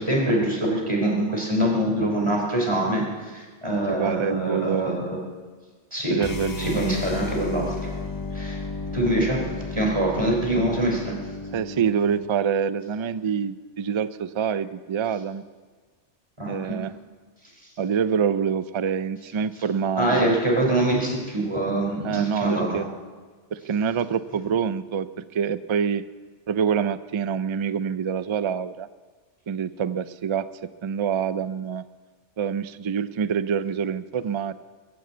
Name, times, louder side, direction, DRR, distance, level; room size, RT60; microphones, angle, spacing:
voice 1, 0.0-5.2 5.9-6.2 6.6-7.8 8.3-8.6 8.9-11.2 16.4-16.8 20.0-22.8, right 1 dB, 25° right, -1 dB, 3.7 m, -24 dB
voice 2, 3.9-5.0 6.1-6.8 11.5-15.4 16.5-17.0 17.8-20.3 22.0-22.9 23.5-26.0 26.5-28.9 29.5-31.8 32.4-34.5, right 7 dB, 50° right, 14 dB, 0.3 m, -26 dB
sound 1, 6.2-12.3, left 3 dB, 25° left, 0.5 m, -33 dB
22.0 x 7.6 x 8.2 m, 1.5 s
omnidirectional pair, 1.2 m